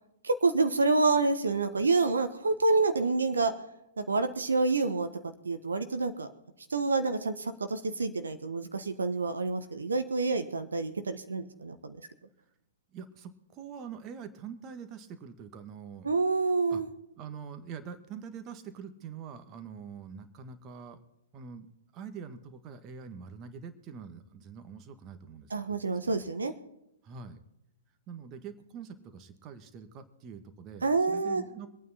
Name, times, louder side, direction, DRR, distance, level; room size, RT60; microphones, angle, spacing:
voice 1, 0.2-3.5 4.0-5.1 5.4-6.3 6.7-12.0 16.0-16.9 25.5-26.5 30.8-31.4, right 3 dB, 75° right, 9 dB, 1.3 m, -28 dB
voice 2, 12.9-16.1 16.7-16.8 17.2-21.0 21.3-21.6 21.9-25.8 26.0-26.2 27.0-27.4 28.1-31.7, right 6 dB, 30° right, 9 dB, 1.7 m, -44 dB
24.5 x 9.2 x 4.2 m, 0.86 s
figure-of-eight pair, 115°, 0 cm